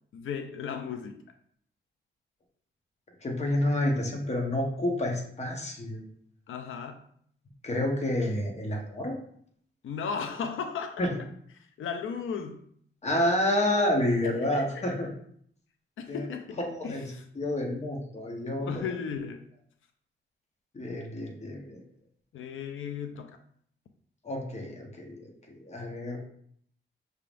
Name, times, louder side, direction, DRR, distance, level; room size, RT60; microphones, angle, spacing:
voice 1, 0.1-1.2 6.5-7.0 9.8-11.1 11.5-12.6 14.2-14.8 16.0-16.6 16.8-17.3 18.6-19.4 22.3-23.4, left 6 dB, 80° left, 6 dB, 0.5 m, -36 dB
voice 2, 3.2-6.0 7.6-9.1 11.0-11.1 13.0-15.1 16.1-16.3 16.6-17.1 17.4-18.7 20.7-21.8 24.2-26.2, left 1 dB, 35° left, 1 dB, 1.1 m, -29 dB
5.6 x 3.5 x 2.5 m, 0.64 s
wide cardioid pair, 120°, 20 cm